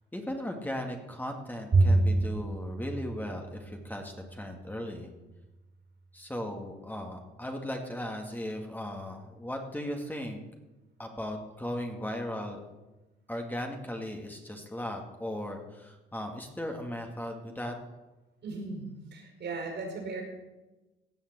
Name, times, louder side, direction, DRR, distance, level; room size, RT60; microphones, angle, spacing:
voice 1, 0.1-5.1 6.1-10.4 11.0-12.6 13.3-17.7, left 1 dB, 10° left, 2 dB, 2.0 m, -37 dB
Bowed string instrument, 1.7-4.3, right 2 dB, 40° right, 3.4 m, -27 dB
voice 2, 18.4-20.2, right 3 dB, 60° right, 2 dB, 5.1 m, -37 dB
16.5 x 5.6 x 8.9 m, 1.1 s
cardioid pair, 90°, 20 cm